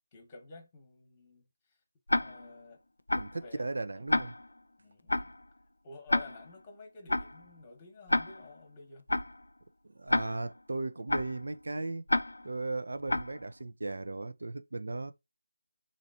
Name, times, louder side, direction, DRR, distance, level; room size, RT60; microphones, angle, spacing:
voice 1, 0.1-1.8 2.2-2.8 3.4-3.7 4.8-5.4 5.8-9.0, left 3 dB, 15° left, 1.1 m, -51 dB
Tick-tock, 2.1-2.6 3.1-3.4 4.1-4.6 5.1-5.4 6.1-6.6 7.1-7.4 8.1-8.6 9.1-9.4 10.1-10.6 11.1-11.4 12.1-12.6 13.1-13.4, left 2 dB, 80° left, 0.3 m, -30 dB
voice 2, 3.1-4.3 9.9-12.1 12.4-15.1, right 2 dB, 65° right, 0.5 m, -36 dB
3.1 x 2.5 x 2.7 m
figure-of-eight pair, 165°, 0 cm